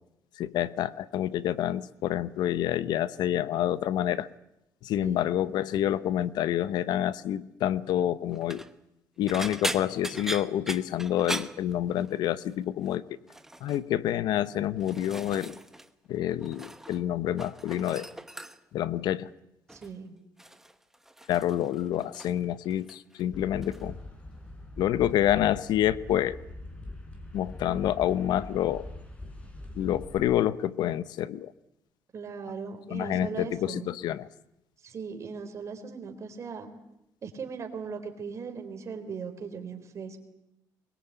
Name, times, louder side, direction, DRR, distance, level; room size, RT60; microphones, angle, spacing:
voice 1, 0.4-4.3 4.8-8.6 9.2-13.0 13.6-15.6 16.1-18.1 18.7-19.3 21.3-24.0 24.8-26.4 27.3-28.9 29.7-31.5 32.9-34.3, left 11 dB, 80° left, 17 dB, 0.9 m, -28 dB
voice 2, 5.0-5.3 19.7-20.2 32.1-33.9 34.8-36.7 37.2-40.2, right 5 dB, 45° right, 6 dB, 4.0 m, -38 dB
sound 1, 8.3-8.7 9.3-12.3 12.6-12.9 13.3-13.8 14.5-15.9 16.2-17.0 17.3-18.8 19.7-20.0 20.4-22.4 22.7-23.2 23.6-23.8 25.1-25.2, right 1 dB, 5° right, 1.1 m, -39 dB
sound 2, 23.3-30.2, left 1 dB, 15° left, 4.4 m, -42 dB
23.0 x 21.5 x 9.4 m, 0.86 s
cardioid pair, 125°, 7 cm